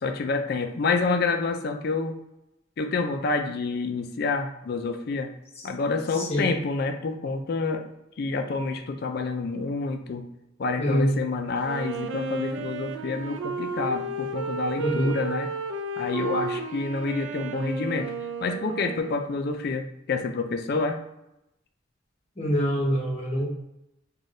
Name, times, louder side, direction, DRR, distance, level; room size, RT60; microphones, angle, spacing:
voice 1, 0.0-2.2 2.8-5.3 5.6-7.9 8.2-10.2 10.6-15.5 16.0-18.1 18.4-21.0, left 3 dB, 55° left, 5 dB, 0.4 m, -28 dB
voice 2, 6.1-6.6 10.8-11.1 14.8-15.2 22.4-23.5, equal, 35° left, -3 dB, 0.9 m, -25 dB
Wind instrument woodwind instrument, 11.6-19.3, right 3 dB, 80° right, 0.3 m, -33 dB
3.3 x 2.3 x 2.6 m, 0.86 s
head